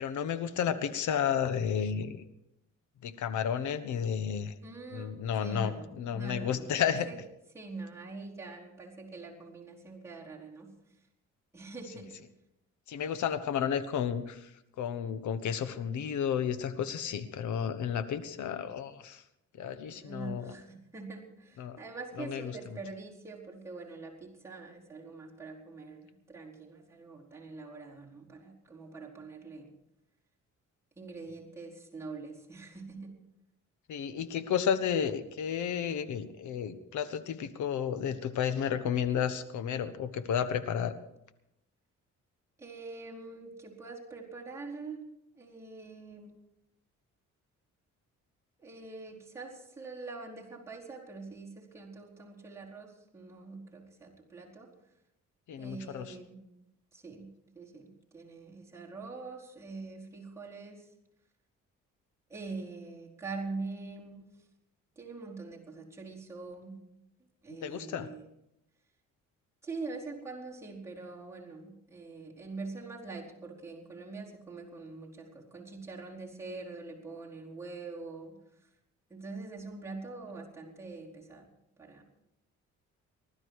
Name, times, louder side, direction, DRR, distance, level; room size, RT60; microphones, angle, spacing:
voice 1, 0.0-2.2 3.0-4.5 4.9-7.1 12.9-14.4 14.8-19.2 19.6-20.5 21.6-21.8 22.2-22.5 33.9-40.9 55.5-56.0 67.6-68.1, left 8 dB, 75° left, 12 dB, 1.3 m, -32 dB
voice 2, 4.6-5.9 6.1-7.2 7.5-10.7 11.5-12.1 19.7-29.7 31.0-33.1 42.6-45.0 45.3-46.3 48.6-54.7 55.6-56.4 56.9-57.3 57.5-60.9 62.3-64.3 65.0-66.8 67.4-68.3 69.6-78.7 79.1-81.5 81.8-82.0, right 3 dB, 10° right, -5 dB, 4.4 m, -44 dB
20.0 x 12.0 x 4.8 m, 0.84 s
cardioid pair, 90°, 30 cm